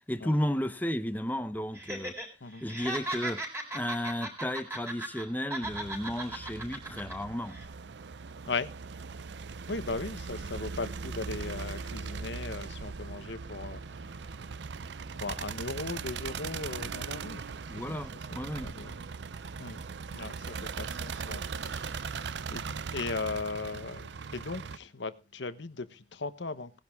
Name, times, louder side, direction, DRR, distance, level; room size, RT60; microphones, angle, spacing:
voice 1, 0.1-2.2 2.6-3.4 3.7-7.6 17.7-18.7, equal, 10° left, 0.8 m, -33 dB
Laughter, 1.7-2.3 2.6-5.2 5.5-7.1 7.5-7.6, right 1 dB, 15° right, 4.4 m, -37 dB
sound 1, 5.6-24.8, right 5 dB, 70° right, 0.5 m, -39 dB
voice 2, 9.7-14.5 15.1-17.5 17.7-18.0 18.6-19.1 19.6-19.8 20.1-26.8, left 3 dB, 75° left, 1.0 m, -38 dB
18.0 x 10.5 x 3.6 m
head